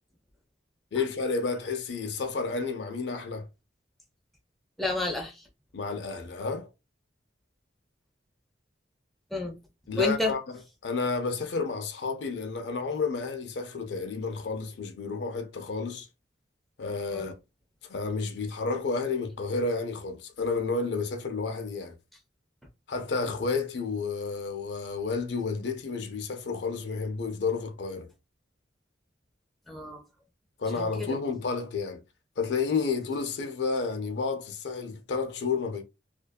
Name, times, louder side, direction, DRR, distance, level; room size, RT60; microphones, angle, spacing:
voice 1, 0.9-3.5 5.7-6.7 9.9-10.6 10.8-16.1 16.8-17.3 17.8-21.9 22.9-28.1 30.6-32.0 32.4-35.8, left 4 dB, 70° left, 0.5 m, -31 dB
voice 2, 4.8-5.4 9.3-9.6 10.0-10.3 17.1-17.3 29.7-30.0 30.7-31.2, left 2 dB, ahead, 0.4 m, -30 dB
2.5 x 2.3 x 2.2 m
head